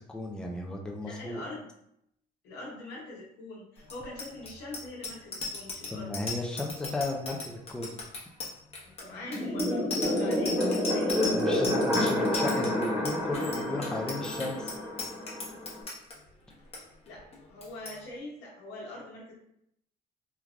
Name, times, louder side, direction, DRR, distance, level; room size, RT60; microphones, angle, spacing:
voice 1, 0.0-1.4 5.9-7.9 11.3-14.8, left 2 dB, 5° left, 0 dB, 0.4 m, -35 dB
voice 2, 1.0-1.7 2.4-6.1 8.9-11.3 17.0-19.3, left 2 dB, 85° left, -3 dB, 1.0 m, -43 dB
Bicycle bell, 3.8-16.1 16.5-16.8 17.1-17.4 17.6-18.0, left 3 dB, 35° left, 0.8 m, -37 dB
sound 1, 9.3-15.8, left 1 dB, 15° right, 0.7 m, -29 dB
3.2 x 2.2 x 2.4 m, 0.75 s
cardioid pair, 110°, 17 cm